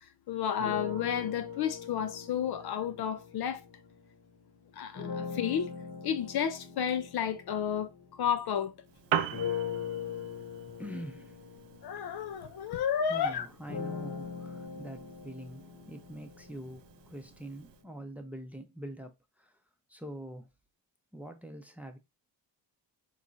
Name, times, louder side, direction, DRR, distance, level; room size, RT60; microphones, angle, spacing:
voice 1, 0.3-3.6 4.8-5.7 6.0-8.7 11.8-13.5, left 8 dB, 60° left, 0.5 m, -32 dB
sound 1, 0.6-4.1 4.9-8.7 9.3-17.3, left 7 dB, 40° left, 1.0 m, -41 dB
Piano, 8.8-17.8, right 10 dB, 80° right, 0.6 m, -41 dB
voice 2, 10.8-11.4 12.5-12.6 13.0-19.6 19.9-20.5 21.1-22.0, right 1 dB, 5° right, 0.6 m, -44 dB
3.6 x 3.1 x 2.6 m
cardioid pair, 85°, 43 cm